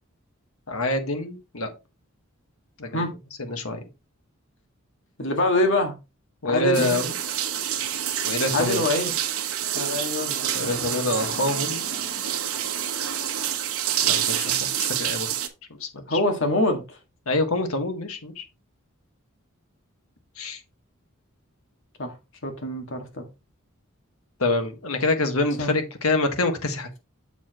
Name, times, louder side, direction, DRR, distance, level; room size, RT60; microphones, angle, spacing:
voice 1, 0.7-1.7 2.8-3.0 3.4-3.8 6.4-7.1 8.2-8.8 10.5-11.8 14.0-15.3 15.8-16.2 17.2-18.4 20.4-20.6 24.4-27.0, left 2 dB, 80° left, 1.6 m, -26 dB
voice 2, 5.2-5.9 6.4-7.0 8.5-9.1 9.7-11.1 16.1-17.0 22.0-22.1 22.4-23.2 25.6-25.8, left 2 dB, 60° left, 1.9 m, -25 dB
sound 1, 6.7-15.5, right 10 dB, 85° right, 1.2 m, -27 dB
7.3 x 6.9 x 3.0 m
head